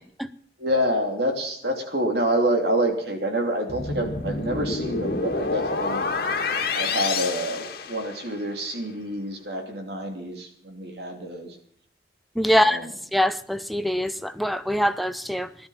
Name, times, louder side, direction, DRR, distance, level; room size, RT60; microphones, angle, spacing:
voice 1, 0.6-6.0 6.7-11.6 12.5-12.9, right 1 dB, 60° right, 3.0 m, -27 dB
sound 1, 3.7-8.4, left 4 dB, 55° left, 1.9 m, -28 dB
voice 2, 12.4-12.8 13.1-15.5, equal, ahead, 0.7 m, -23 dB
17.0 x 13.0 x 5.7 m
head